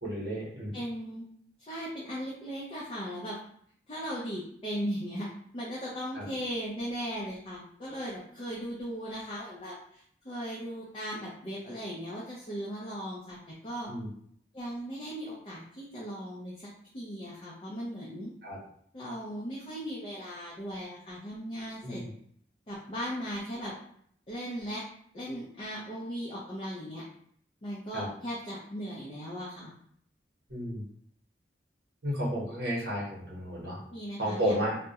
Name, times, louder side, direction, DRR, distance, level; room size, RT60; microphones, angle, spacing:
voice 1, 0.0-0.7 6.1-6.3 13.9-14.1 18.4-18.6 21.8-22.1 27.9-28.1 30.5-30.8 32.0-33.8 34.2-34.8, equal, 65° right, -5 dB, 0.9 m, -32 dB
voice 2, 0.7-1.3 1.6-3.3 3.9-5.3 5.5-13.4 13.6-13.9 14.5-16.7 16.9-18.3 18.9-22.0 22.7-23.7 24.3-24.8 25.1-27.0 27.6-29.7 33.9-34.5, equal, 30° left, -6 dB, 0.4 m, -37 dB
2.3 x 2.1 x 2.8 m, 0.65 s
head